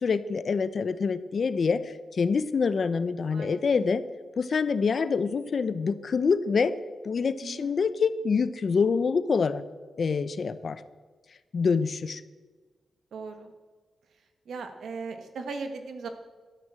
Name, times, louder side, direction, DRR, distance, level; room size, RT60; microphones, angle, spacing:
voice 1, 0.0-4.0 4.4-6.7 7.0-9.6 10.0-10.8 11.5-12.2, left 5 dB, 50° left, 14 dB, 0.7 m, -26 dB
voice 2, 3.3-3.8 7.4-7.7 13.1-13.5 14.4-16.1, right 4 dB, 85° right, 6 dB, 1.6 m, -38 dB
13.0 x 9.6 x 7.6 m, 1.3 s
wide cardioid pair, 130°, 0 cm